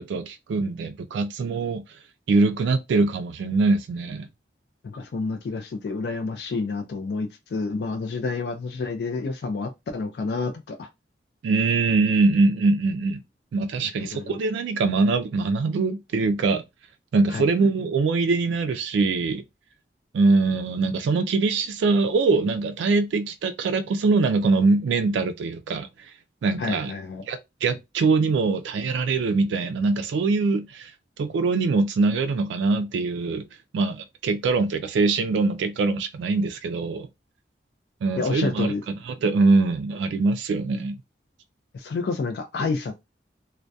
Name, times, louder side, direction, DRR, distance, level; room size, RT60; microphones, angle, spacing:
voice 1, 0.0-1.8 2.3-4.3 11.4-13.2 13.5-16.6 17.1-19.4 20.1-25.9 26.4-26.9 27.3-30.9 31.2-33.4 33.7-37.1 38.0-38.7 39.1-40.9, right 3 dB, 85° right, 0.3 m, -23 dB
voice 2, 4.8-10.9 14.0-14.4 17.3-17.5 26.6-27.2 38.2-38.8 41.7-43.0, left 4 dB, 60° left, 0.3 m, -29 dB
2.2 x 2.1 x 2.6 m
head